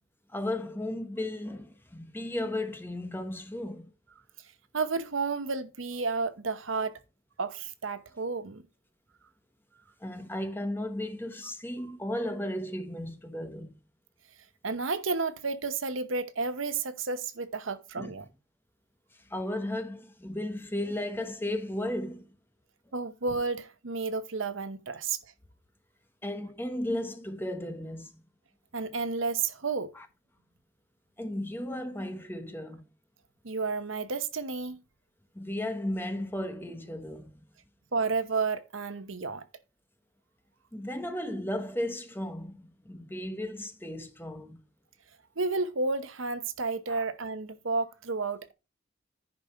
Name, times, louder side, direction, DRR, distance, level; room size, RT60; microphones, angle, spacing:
voice 1, 0.3-3.9 10.0-13.7 18.0-18.1 19.3-22.3 26.2-28.1 29.9-30.1 31.2-32.8 35.3-37.3 40.7-44.6 46.9-47.0, left 1 dB, 10° left, 1.0 m, -35 dB
voice 2, 4.7-7.0 7.4-8.6 14.6-18.3 22.9-25.2 28.7-29.9 33.4-34.8 37.9-39.4 45.4-48.5, right 4 dB, 75° right, 0.9 m, -31 dB
10.5 x 5.1 x 4.3 m
head